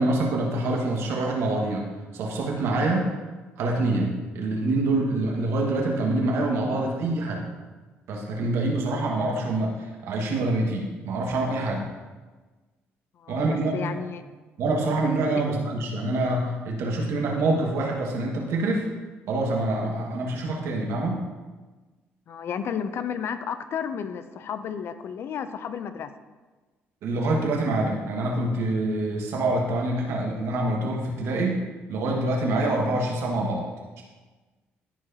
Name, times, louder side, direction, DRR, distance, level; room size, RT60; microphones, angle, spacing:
voice 1, 0.0-1.9 2.1-3.1 3.6-7.4 8.1-11.9 13.3-13.8 14.6-18.9 19.3-21.3 27.0-31.6 31.9-33.7 34.0-34.1, right 2 dB, 75° right, -1 dB, 1.7 m, -26 dB
voice 2, 13.7-14.2 15.3-15.4 22.3-26.1, left 7 dB, 60° left, 11 dB, 0.5 m, -32 dB
14.0 x 4.9 x 2.9 m, 1.3 s
supercardioid pair, 75°, 5 cm